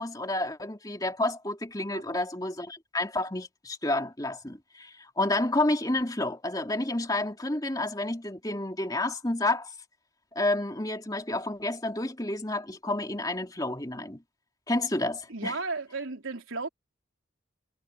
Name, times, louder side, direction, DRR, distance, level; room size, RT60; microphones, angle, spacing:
voice 1, 0.0-9.7 10.3-14.2 14.7-15.5, left 2 dB, 20° left, 2.7 m, -30 dB
voice 2, 1.9-2.2 15.3-16.7, right 3 dB, 90° right, 4.0 m, -34 dB
head